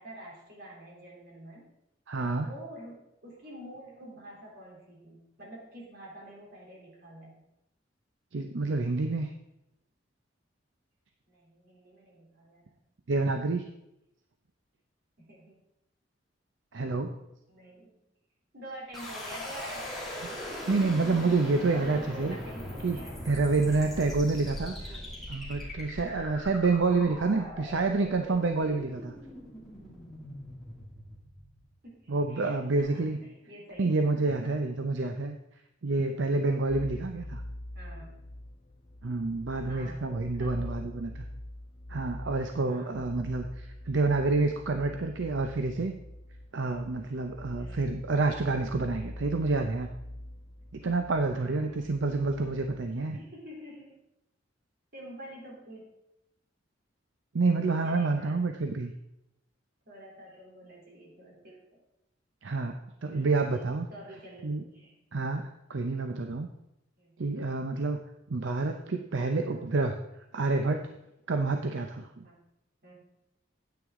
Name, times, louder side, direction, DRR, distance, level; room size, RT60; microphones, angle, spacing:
voice 1, 0.0-1.7 2.4-7.3 11.3-12.8 15.2-15.5 17.5-18.0 18.5-20.0 20.3-21.2 21.7-23.9 24.8-25.1 27.3-27.8 31.8-34.6 37.7-38.2 39.7-41.2 42.7-43.4 47.6-48.1 51.3-51.9 53.1-54.0 54.9-55.8 57.8-58.4 59.9-61.6 63.1-63.4 63.9-64.9 67.0-67.2 69.5-69.7 72.2-72.4 72.8-73.0, right 1 dB, 55° right, -3 dB, 3.2 m, -48 dB
voice 2, 2.1-2.5 8.3-9.3 13.1-13.7 16.7-17.1 20.7-22.4 22.8-23.0 23.2-24.8 25.3-29.1 32.1-33.2 33.8-35.4 35.8-37.4 39.0-41.3 41.9-45.9 46.5-49.9 50.7-53.2 57.3-58.9 62.4-63.9 64.4-64.6 65.1-66.5 67.2-68.0 68.3-69.9 70.3-70.9 71.3-72.2, right 3 dB, 75° right, 6 dB, 0.6 m, -28 dB
sound 1, 18.9-31.9, left 1 dB, ahead, 2.5 m, -40 dB
sound 2, 36.7-52.9, left 1 dB, 30° left, 0.6 m, -44 dB
9.3 x 8.9 x 3.6 m, 0.87 s
head